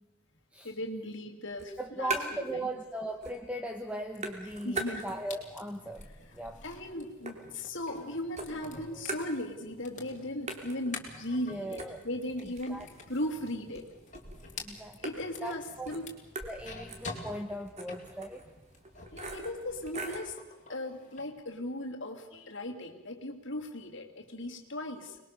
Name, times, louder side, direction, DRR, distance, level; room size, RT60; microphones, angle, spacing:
voice 1, 0.6-2.7 4.4-5.1 6.1-13.9 15.0-16.1 19.1-20.4 20.7-25.2, left 1 dB, 55° left, 2 dB, 2.7 m, -38 dB
sound 1, 1.5-2.6 2.9-3.6 3.8-5.4 5.8-8.0 8.4-9.8 10.1-10.2 10.5-20.3, right 2 dB, 30° right, 2.7 m, -42 dB
voice 2, 1.8-6.1 6.3-6.6 11.5-12.0 12.7-12.9 14.6-15.0 15.4-15.9 16.4-18.4, right 1 dB, 5° right, 5 dB, 1.0 m, -38 dB
sound 2, 4.1-19.3 19.6-21.3, left 3 dB, 35° left, 3.3 m, -49 dB
25.5 x 21.0 x 6.7 m, 1.0 s
head